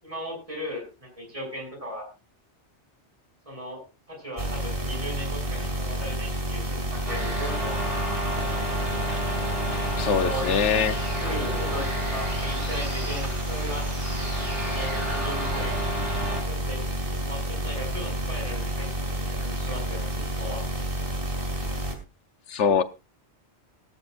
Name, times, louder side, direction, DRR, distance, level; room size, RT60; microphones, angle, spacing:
voice 1, 0.0-2.1 3.5-7.8 10.1-13.9 14.6-15.8 16.2-16.8 17.2-18.9 19.3-20.7, equal, 30° right, 6.0 m, -37 dB
sound 1, 4.4-21.9, equal, 50° right, 2.4 m, -30 dB
sound 2, 7.1-16.4, equal, 90° right, 6.2 m, -32 dB
voice 2, 10.0-11.0 22.5-22.8, left 6 dB, 85° left, 1.1 m, -23 dB
17.0 x 13.0 x 2.4 m
omnidirectional pair, 1.2 m